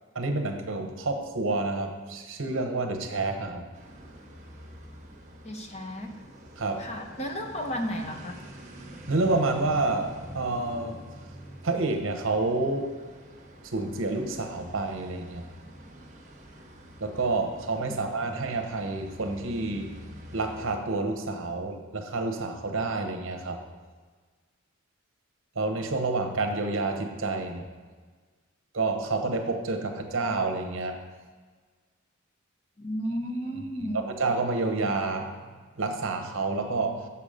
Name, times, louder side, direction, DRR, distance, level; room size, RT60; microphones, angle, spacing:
voice 1, 0.1-3.6 6.6-6.9 9.1-11.0 11.6-12.9 13.7-15.4 17.0-19.9 20.3-23.6 25.6-27.7 28.7-31.0 33.9-35.3 35.8-37.1, right 3 dB, 65° right, 5 dB, 0.9 m, -29 dB
sound 1, 3.7-20.8, equal, 35° right, 1.3 m, -46 dB
voice 2, 5.4-6.1 6.8-8.4 32.8-34.1, equal, 30° left, 3 dB, 0.8 m, -33 dB
7.2 x 7.0 x 5.0 m, 1.5 s
head